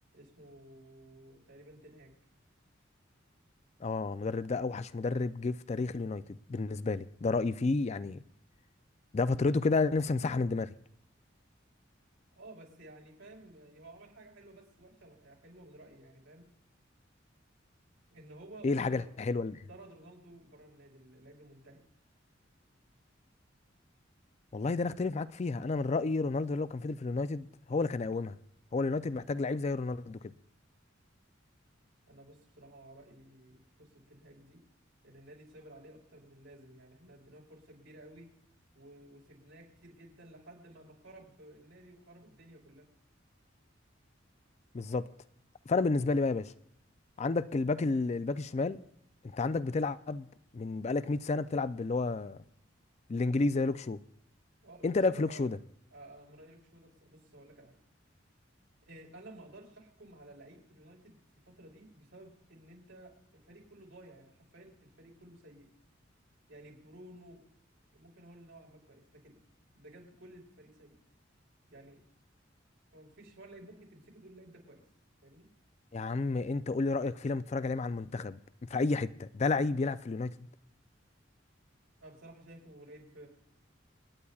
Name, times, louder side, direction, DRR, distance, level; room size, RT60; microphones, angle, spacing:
voice 1, 0.1-2.1 12.4-16.4 18.1-19.1 19.7-21.8 32.1-34.6 35.0-38.3 38.7-42.9 54.6-55.5 55.9-57.7 58.9-65.7 66.5-67.4 67.9-69.4 69.7-70.9 71.7-72.0 72.9-74.8 75.2-75.5 82.0-83.3, right 1 dB, 85° right, 4.7 m, -54 dB
voice 2, 3.8-6.2 6.5-8.2 9.1-10.7 18.6-19.6 24.5-28.4 28.7-30.3 44.7-45.1 45.7-46.5 47.2-48.8 49.2-50.3 50.5-52.4 53.1-54.0 54.8-55.6 75.9-80.5, left 3 dB, 35° left, 0.4 m, -31 dB
28.0 x 9.8 x 2.4 m
head